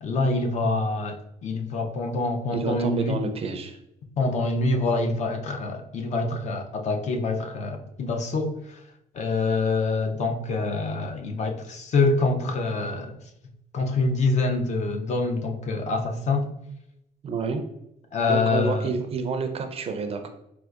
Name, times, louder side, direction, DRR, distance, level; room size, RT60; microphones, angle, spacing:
voice 1, 0.0-3.2 4.2-8.8 9.1-13.1 13.7-16.5 18.1-18.9, left 3 dB, 45° left, 0.5 m, -26 dB
voice 2, 2.5-3.8 17.2-17.6 18.3-20.3, right 4 dB, 35° right, 0.4 m, -29 dB
4.4 x 2.2 x 2.4 m
cardioid pair, 110°, 17 cm